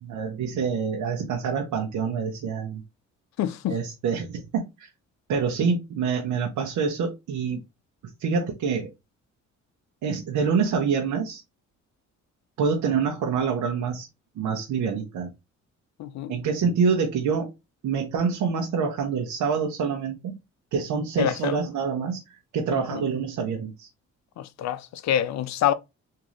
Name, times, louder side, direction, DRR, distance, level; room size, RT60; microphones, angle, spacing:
voice 1, 0.0-2.8 3.7-4.9 5.3-7.6 8.2-8.9 10.0-11.4 12.6-14.1 14.4-15.3 16.3-17.5 17.8-20.4 20.7-22.2 22.5-23.9, right 5 dB, 80° right, 1.0 m, -26 dB
voice 2, 3.4-3.8 16.0-16.3 21.2-21.6 22.7-23.0 24.4-25.7, left 10 dB, 65° left, 0.5 m, -26 dB
3.7 x 2.8 x 3.1 m
cardioid pair, 90°, 30 cm